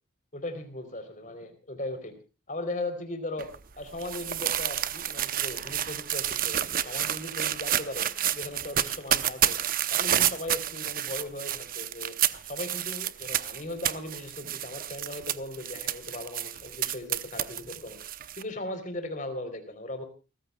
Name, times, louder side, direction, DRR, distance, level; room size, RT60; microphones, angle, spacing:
voice 1, 0.3-2.1 2.5-3.5 3.8-8.1 8.3-9.6 9.9-12.1 12.4-18.0 18.3-20.1, left 1 dB, 40° left, 8 dB, 3.7 m, -38 dB
sound 1, 3.4-18.4, right 11 dB, 45° right, 0.8 m, -30 dB
29.5 x 15.0 x 2.3 m, 0.32 s
head